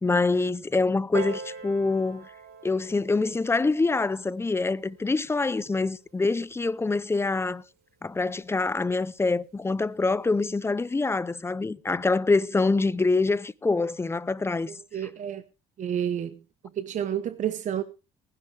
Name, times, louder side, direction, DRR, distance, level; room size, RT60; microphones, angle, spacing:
voice 1, 0.0-2.3 2.6-7.6 8.0-14.8, left 3 dB, 15° left, 0.5 m, -25 dB
Piano, 1.1-6.3 7.2-7.3, right 5 dB, 70° right, 3.4 m, -42 dB
voice 2, 14.7-15.4 15.8-16.4 16.8-17.8, right 9 dB, 45° right, 0.9 m, -30 dB
20.0 x 10.5 x 3.3 m
cardioid pair, 110°, 17 cm